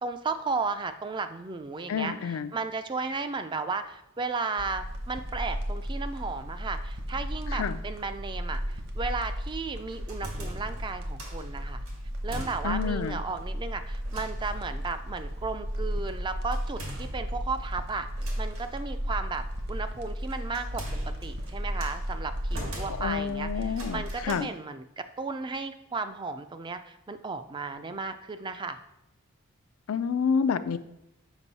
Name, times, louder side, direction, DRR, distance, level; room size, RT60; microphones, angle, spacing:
voice 1, 0.0-11.8 12.2-18.1 18.4-20.8 21.2-28.8, right 4 dB, 20° right, 9 dB, 0.3 m, -34 dB
voice 2, 1.9-2.5 7.5-7.8 12.6-13.2 23.0-24.5 29.9-30.8, left 6 dB, 80° left, 11 dB, 0.4 m, -29 dB
sound 1, 4.6-24.4, equal, 50° right, 1.0 m, -34 dB
sound 2, 9.9-11.5 11.8-13.0 13.3-13.4 14.0-14.7 16.5-17.6 18.1-18.7 19.9-22.0 22.5-23.3 23.7-24.3, right 1 dB, 75° right, 1.7 m, -43 dB
7.1 x 5.3 x 4.1 m, 0.85 s
head